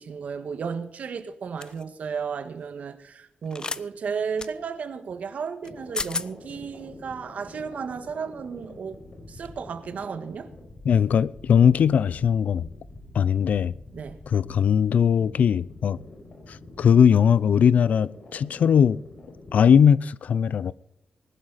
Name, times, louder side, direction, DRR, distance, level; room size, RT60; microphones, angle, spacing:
voice 1, 0.0-9.0 9.3-10.5 13.9-14.2, right 6 dB, 70° right, 1.7 m, -34 dB
sound 1, 1.6-1.8 3.5-3.8 4.4-4.5 5.6-5.7 5.9-6.3, left 4 dB, 30° left, 0.6 m, -31 dB
sound 2, 5.6-19.7, left 2 dB, 50° left, 5.3 m, -46 dB
voice 2, 10.8-12.7 13.1-13.7 14.3-16.0 16.5-19.0 19.5-20.7, left 7 dB, 80° left, 0.5 m, -19 dB
20.0 x 11.5 x 4.1 m
wide cardioid pair, 120°, 3 cm